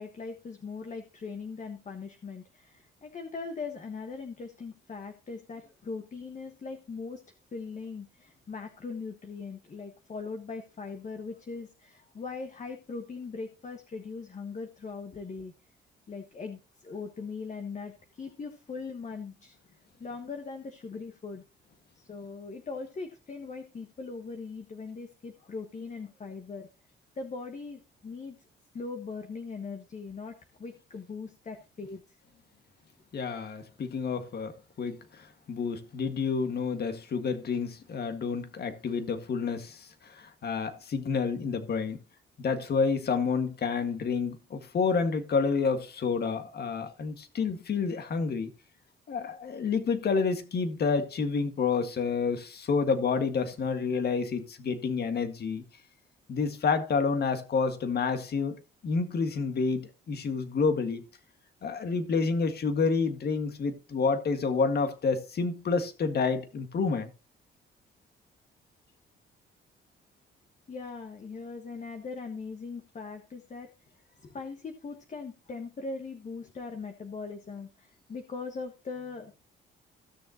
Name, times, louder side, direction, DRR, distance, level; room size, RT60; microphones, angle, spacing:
voice 1, 0.0-7.2 7.5-15.5 16.1-19.6 20.0-21.4 21.9-26.7 27.1-28.4 28.7-32.0 70.7-73.7 74.2-79.4, left 4 dB, 40° left, 1.3 m, -40 dB
voice 2, 33.1-42.0 42.4-48.5 49.1-55.6 56.3-61.0 61.6-67.1, left 5 dB, 55° left, 1.7 m, -29 dB
16.0 x 6.7 x 2.9 m
cardioid pair, 90°, 20 cm